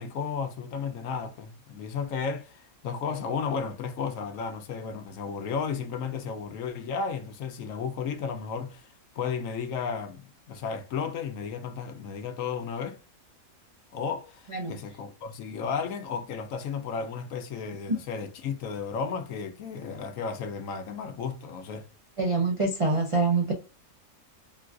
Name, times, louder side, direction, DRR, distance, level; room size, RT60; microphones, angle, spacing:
voice 1, 0.0-10.2 10.5-13.0 13.9-21.9, left 6 dB, 70° left, 0.9 m, -33 dB
voice 2, 22.2-23.5, right 3 dB, 55° right, 0.3 m, -25 dB
3.8 x 2.4 x 2.3 m
omnidirectional pair, 1.5 m